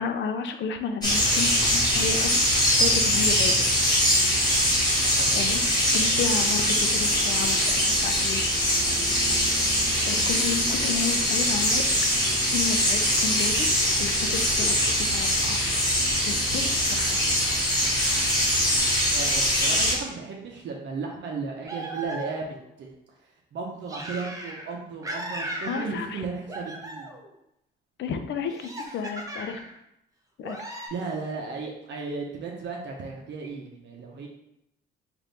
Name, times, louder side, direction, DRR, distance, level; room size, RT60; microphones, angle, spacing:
voice 1, 0.0-2.4 2.8-3.7 5.4-5.6 5.9-8.4 10.1-12.2 12.5-13.7 14.0-14.8 15.1-15.6 16.3-17.2 25.6-26.2 28.0-29.6 30.4-30.6, left 6 dB, 65° left, 7 dB, 0.5 m, -32 dB
sound 1, 1.0-20.0, equal, 20° left, 1.4 m, -23 dB
voice 2, 5.2-6.1 19.1-22.9 23.5-27.1 30.9-34.3, right 4 dB, 65° right, -1 dB, 0.7 m, -35 dB
sound 2, 21.6-22.6 23.9-24.7 25.0-26.2 26.5-27.3 28.5-29.8 30.4-30.9, right 1 dB, 15° right, 0.8 m, -37 dB
3.4 x 2.6 x 4.0 m, 0.81 s
cardioid pair, 90°, 20 cm